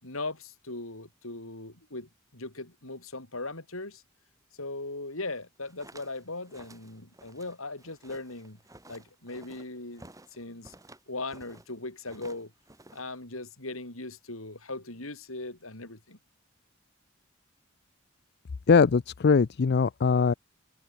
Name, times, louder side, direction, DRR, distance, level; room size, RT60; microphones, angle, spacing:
voice 1, 0.0-4.0 4.5-8.6 8.9-10.7 11.1-12.5 12.9-16.2, left 2 dB, 90° left, 5.8 m, -39 dB
sound 1, 5.5-11.7 12.0-13.2, right 2 dB, 15° right, 3.5 m, -53 dB
voice 2, 18.7-20.3, left 5 dB, 55° left, 0.5 m, -21 dB
head